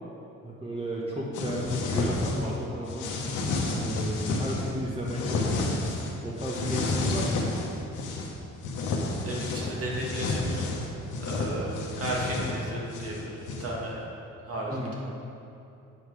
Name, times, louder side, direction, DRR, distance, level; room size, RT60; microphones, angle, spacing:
voice 1, 0.4-3.1 3.7-7.4 12.3-12.5 14.7-14.9, equal, 20° right, -5 dB, 1.2 m, -33 dB
sound 1, 1.3-2.6 2.9-4.7 5.1-6.1 6.4-8.3 8.6-13.8, left 3 dB, 90° left, 1.2 m, -30 dB
voice 2, 9.2-10.7 11.1-14.1 14.4-14.9, right 1 dB, 50° right, -3 dB, 2.1 m, -34 dB
9.1 x 5.6 x 4.9 m, 2.7 s
cardioid pair, 90°, 30 cm